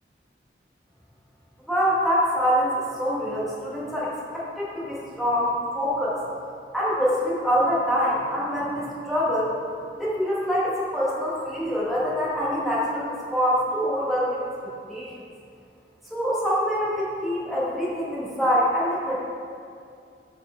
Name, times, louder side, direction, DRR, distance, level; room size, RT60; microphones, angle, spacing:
voice 1, 1.7-6.2 6.7-9.6 9.9-14.4 14.9-15.1 16.1-19.2, equal, ahead, -8 dB, 1.0 m, -25 dB
5.1 x 4.4 x 4.2 m, 2.4 s
head